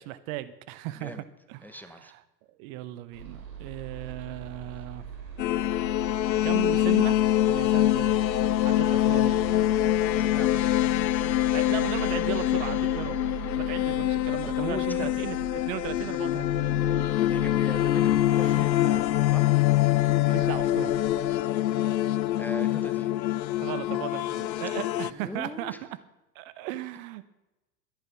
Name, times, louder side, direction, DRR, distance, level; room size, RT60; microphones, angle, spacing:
voice 1, 0.0-2.2 2.6-5.0 6.4-8.2 8.6-9.4 11.5-13.2 13.6-15.4 15.6-16.6 20.2-20.9 23.6-25.7 26.3-27.2, right 14 dB, 55° right, 15 dB, 1.0 m, -36 dB
voice 2, 1.6-2.1 10.2-10.8 14.4-15.2 17.3-19.5 22.4-23.1 25.0-25.8, left 1 dB, 5° left, 8 dB, 1.1 m, -40 dB
sound 1, 3.1-21.3, right 6 dB, 85° right, 3.8 m, -40 dB
sound 2, 5.4-25.1, left 14 dB, 90° left, 0.6 m, -25 dB
12.5 x 10.5 x 6.0 m, 0.98 s
hypercardioid pair, 100°, 50 cm